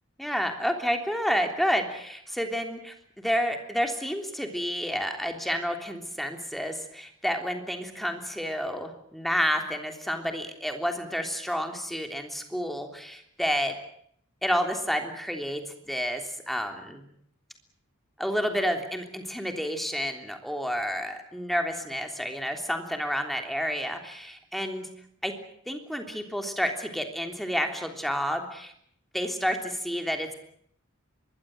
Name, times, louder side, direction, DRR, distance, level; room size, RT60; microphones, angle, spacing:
voice 1, 0.2-13.7 14.4-15.6 15.9-17.0 18.2-24.9 25.2-25.3 25.7-28.7 29.1-30.3, equal, ahead, 4 dB, 3.3 m, -30 dB
24.5 x 22.0 x 7.9 m, 0.68 s
head